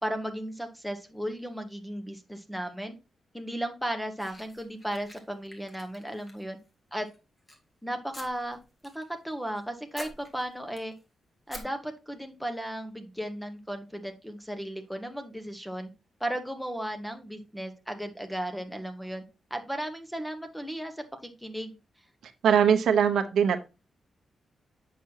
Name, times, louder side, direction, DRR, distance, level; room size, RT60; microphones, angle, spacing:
voice 1, 0.0-3.0 3.3-6.6 6.9-7.1 7.8-8.6 8.9-10.9 11.5-15.9 16.2-19.2 19.5-21.7, equal, ahead, 7 dB, 1.1 m, -35 dB
sound 1, 4.2-6.7 7.0-7.6 8.1-9.0 9.3-9.6 9.9-11.0 11.5-11.6, equal, 20° left, 1.7 m, -47 dB
voice 2, 22.2-23.6, right 8 dB, 85° right, 8 dB, 0.8 m, -22 dB
8.2 x 6.1 x 2.8 m, 0.28 s
wide cardioid pair, 135°, 0 cm